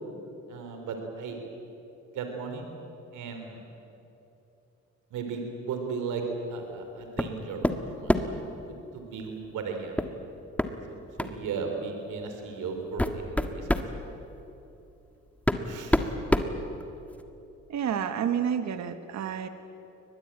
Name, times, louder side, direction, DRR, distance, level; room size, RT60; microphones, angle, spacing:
voice 1, 0.5-1.4 2.2-2.7 3.1-3.6 5.1-6.2 6.5-8.4 8.7-10.0 10.9-13.7 15.7-16.1, right 5 dB, 85° right, 4 dB, 3.5 m, -36 dB
sound 1, 7.2-7.4 7.6-8.4 10.0-10.1 10.6-10.7 11.2-11.4 12.2-12.3 12.8-13.9 15.0-15.1 15.5-17.2, left 1 dB, 5° left, 1.5 m, -26 dB
voice 2, 17.7-19.5, right 8 dB, 65° right, 9 dB, 1.5 m, -29 dB
23.5 x 19.5 x 8.9 m, 3.0 s
cardioid pair, 90°, 30 cm